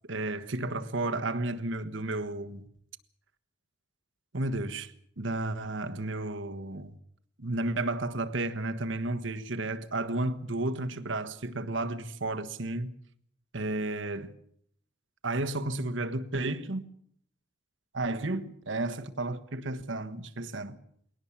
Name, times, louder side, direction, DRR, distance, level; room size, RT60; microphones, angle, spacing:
voice 1, 0.1-2.6 4.3-6.9 7.4-13.0 13.5-14.3 15.2-16.9 17.9-20.8, right 2 dB, 75° right, 1.4 m, -32 dB
21.0 x 18.5 x 7.4 m
head